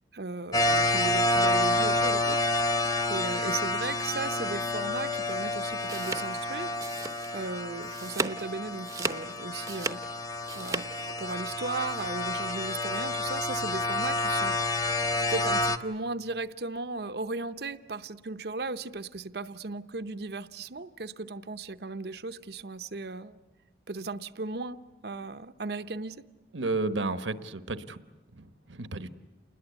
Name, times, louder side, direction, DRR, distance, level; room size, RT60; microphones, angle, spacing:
voice 1, 0.1-2.8 3.1-10.0 10.5-14.9 15.3-23.4 23.9-26.2, right 3 dB, 55° right, 11 dB, 0.8 m, -36 dB
sound 1, 0.5-15.8, left 2 dB, 20° left, 0.8 m, -29 dB
sound 2, 5.6-7.5 7.8-8.4 8.8-10.8, right 3 dB, 20° right, 0.8 m, -35 dB
voice 2, 26.5-28.0 28.3-29.1, right 3 dB, 85° right, 11 dB, 1.2 m, -32 dB
28.5 x 20.5 x 8.2 m, 1.1 s
head